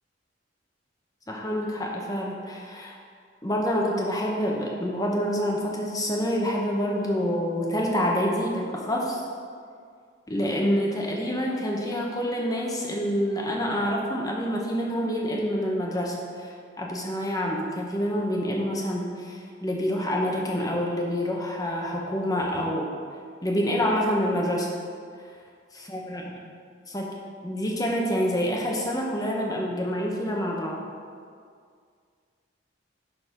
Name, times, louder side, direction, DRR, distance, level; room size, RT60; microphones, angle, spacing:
voice 1, 1.3-3.0 3.4-9.2 10.3-22.9 23.4-24.7 25.7-26.4 26.9-30.8, equal, 20° left, -1 dB, 1.0 m, -27 dB
11.0 x 4.1 x 5.1 m, 2.1 s
head